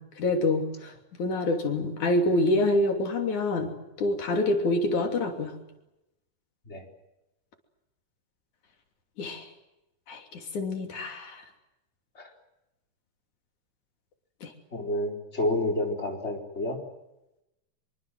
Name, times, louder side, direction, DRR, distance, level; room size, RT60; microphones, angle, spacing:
voice 1, 0.2-0.9 1.2-3.7 4.0-5.5 9.2-9.5 10.1-11.4 14.4-14.5, left 2 dB, 80° left, 4 dB, 4.4 m, -26 dB
voice 2, 14.7-16.8, left 1 dB, 20° left, 1 dB, 4.7 m, -29 dB
25.0 x 24.0 x 7.8 m, 0.91 s
omnidirectional pair, 3.4 m